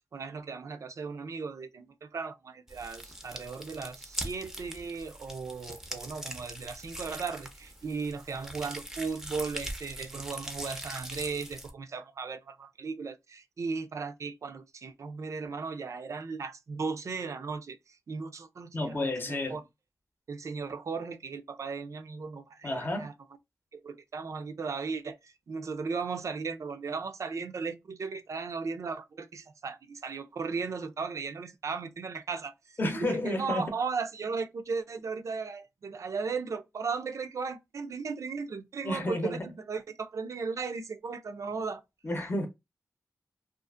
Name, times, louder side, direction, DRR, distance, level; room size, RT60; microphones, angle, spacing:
voice 1, 0.1-19.6 20.3-23.1 23.7-41.8, right 5 dB, 65° right, 0.4 m, -36 dB
sound 1, 2.7-11.7, right 1 dB, 5° right, 0.6 m, -42 dB
voice 2, 18.7-19.6 22.6-23.1 32.8-33.7 38.8-39.5 42.0-42.5, left 1 dB, 35° left, 0.7 m, -31 dB
2.5 x 2.4 x 2.3 m
wide cardioid pair, 110°, 6 cm